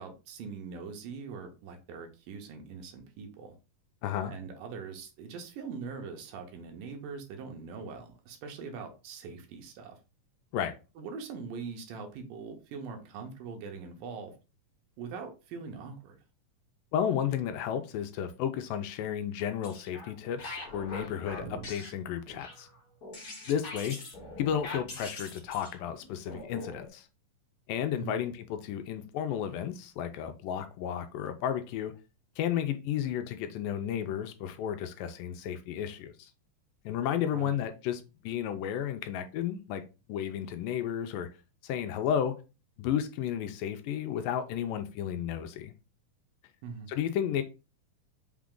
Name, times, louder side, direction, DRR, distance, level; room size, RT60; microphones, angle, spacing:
voice 1, 0.0-3.6 4.3-10.0 11.0-14.3 15.0-16.2 27.9-28.2 37.3-37.6 46.6-46.9, right 5 dB, 80° right, 2.4 m, -42 dB
voice 2, 4.0-4.3 10.5-10.8 16.9-22.7 23.5-24.0 24.4-27.1 27.7-31.9 32.4-36.3 36.9-39.8 40.1-41.3 41.6-42.3 42.8-45.7 46.9-47.4, left 9 dB, 85° left, 2.1 m, -32 dB
sound 1, 19.4-20.1 20.4-26.9, left 2 dB, 40° left, 1.5 m, -43 dB
5.8 x 2.4 x 3.6 m
omnidirectional pair, 3.9 m